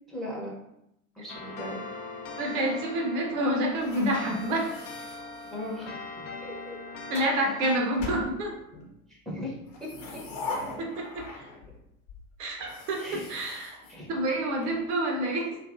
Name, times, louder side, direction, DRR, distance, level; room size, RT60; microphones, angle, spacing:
voice 1, 0.1-0.5 1.1-1.8 5.5-6.0 6.4-6.7 9.1-9.6 13.0-13.3 13.9-14.1 14.6-14.7, left 1 dB, ahead, -4 dB, 0.7 m, -38 dB
sound 1, 1.3-7.8, left 3 dB, 45° left, 0.5 m, -41 dB
voice 2, 2.4-4.7 7.1-8.6 10.8-11.5 12.4-13.8 14.1-15.6, right 1 dB, 55° right, 1 dB, 0.7 m, -28 dB
sound 2, 3.7-5.9 6.7-7.4 8.0-8.9 9.6-11.8 12.1-12.2 12.6-14.6, left 3 dB, 60° left, 0.9 m, -41 dB
2.6 x 2.4 x 2.4 m, 0.82 s
figure-of-eight pair, 75°, 43 cm